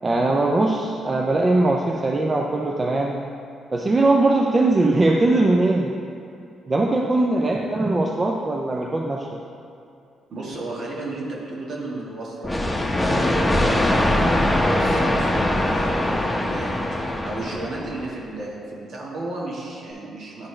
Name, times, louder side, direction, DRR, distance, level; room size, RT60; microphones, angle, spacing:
voice 1, 0.0-3.2 3.7-5.9 6.7-9.4, right 2 dB, 35° right, 0 dB, 0.5 m, -20 dB
voice 2, 7.3-7.7 10.3-16.9 17.2-20.5, right 2 dB, 60° right, -4 dB, 1.6 m, -34 dB
sound 1, 12.4-18.1, left 1 dB, 15° left, 0.8 m, -22 dB
9.8 x 4.2 x 3.3 m, 2.6 s
supercardioid pair, 60°, 0 cm